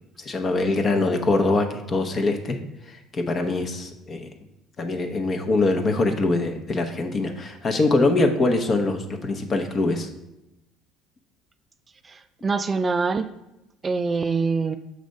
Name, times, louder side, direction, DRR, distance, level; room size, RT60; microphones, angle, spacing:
voice 1, 0.2-2.6 2.9-4.3 4.8-10.1, left 2 dB, 35° left, 6 dB, 0.8 m, -23 dB
voice 2, 12.0-13.3 13.8-14.8, right 4 dB, 25° right, 9 dB, 0.3 m, -24 dB
6.4 x 3.3 x 5.2 m, 0.92 s
supercardioid pair, 100°, 0 cm